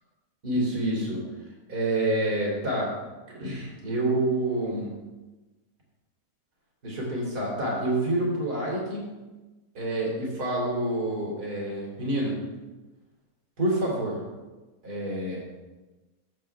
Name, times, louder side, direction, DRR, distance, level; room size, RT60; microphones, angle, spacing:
voice 1, 0.4-1.2 1.7-2.9 3.3-4.9 6.8-9.0 9.8-12.4 13.6-14.2 14.8-15.4, right 1 dB, 75° right, -4 dB, 3.5 m, -27 dB
14.5 x 7.4 x 3.4 m, 1.2 s
omnidirectional pair, 1.7 m